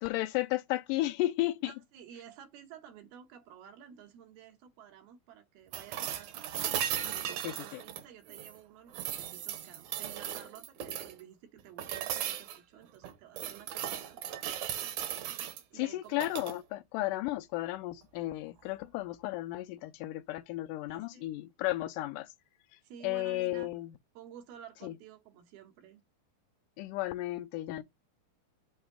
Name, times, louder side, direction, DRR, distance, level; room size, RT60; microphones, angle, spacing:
voice 1, 0.0-1.7 7.4-7.8 15.7-22.3 23.0-23.9 24.8-25.0 26.8-27.8, left 17 dB, 85° left, 1.9 m, -34 dB
voice 2, 1.6-6.5 7.0-14.4 15.7-16.5 20.9-21.3 22.8-23.7 24.1-26.0, right 9 dB, 85° right, 3.2 m, -52 dB
sound 1, 5.7-8.6 8.9-11.2 11.8-12.6 13.0-15.6 16.1-16.6 18.6-18.7, right 10 dB, 70° right, 1.9 m, -37 dB
8.1 x 2.8 x 4.9 m
omnidirectional pair, 4.2 m